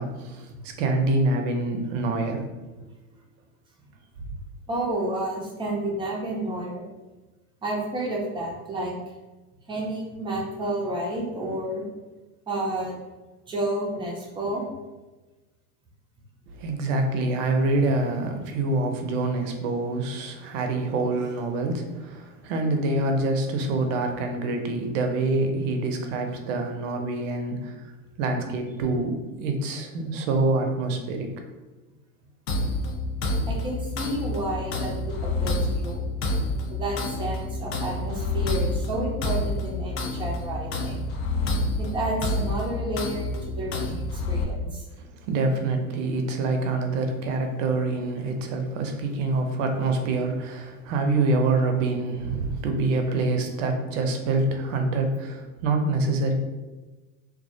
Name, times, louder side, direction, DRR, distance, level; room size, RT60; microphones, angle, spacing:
voice 1, 0.0-2.5 16.5-27.8 28.2-31.3 45.0-56.3, right 2 dB, 60° right, 4 dB, 0.6 m, -26 dB
voice 2, 4.7-6.8 7.6-9.0 9.7-11.8 12.5-13.0 13.5-14.7 33.5-36.0 36.7-41.0 41.8-44.8, right 1 dB, 10° right, -3 dB, 0.5 m, -30 dB
sound 1, 32.5-44.4, left 2 dB, 45° left, 0.5 m, -28 dB
2.3 x 2.0 x 2.6 m, 1.2 s
hypercardioid pair, 100°, 43 cm